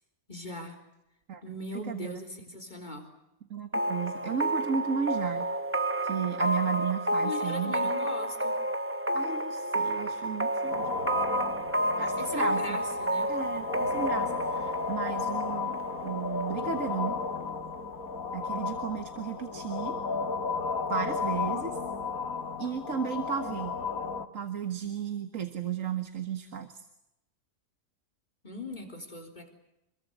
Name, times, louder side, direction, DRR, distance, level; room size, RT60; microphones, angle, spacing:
voice 1, 0.3-0.8 1.4-3.1 7.2-8.6 12.2-13.3 28.4-29.5, left 2 dB, 30° left, 5 dB, 4.2 m, -40 dB
voice 2, 1.9-2.2 3.5-5.5 6.0-7.7 9.1-10.9 12.0-12.8 13.3-17.2 18.3-20.0 20.9-21.8 22.6-23.8 24.3-26.8, right 7 dB, 60° right, 8 dB, 1.9 m, -34 dB
sound 1, 3.7-17.2, right 1 dB, 10° right, 0.7 m, -31 dB
sound 2, 10.7-24.3, left 5 dB, 70° left, 2.1 m, -33 dB
27.0 x 22.0 x 8.1 m, 0.89 s
omnidirectional pair, 1.6 m